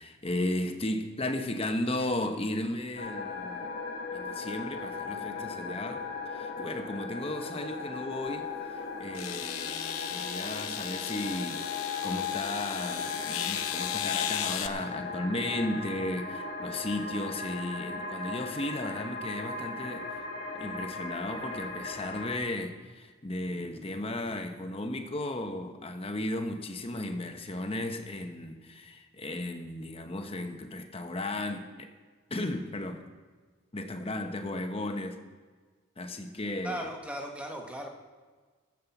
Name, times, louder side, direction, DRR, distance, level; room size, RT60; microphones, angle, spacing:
voice 1, 0.0-3.7 4.1-20.1 20.5-31.9 32.3-33.0 33.7-35.2 36.0-36.9, left 1 dB, 25° left, 6 dB, 0.9 m, -35 dB
sound 1, 3.0-22.4, left 4 dB, 45° left, 1.6 m, -37 dB
sound 2, 8.3-8.4 9.1-14.7, left 10 dB, 75° left, 0.8 m, -35 dB
voice 2, 36.6-37.9, equal, 5° right, 1 dB, 1.3 m, -37 dB
15.0 x 7.5 x 7.1 m, 1.4 s
head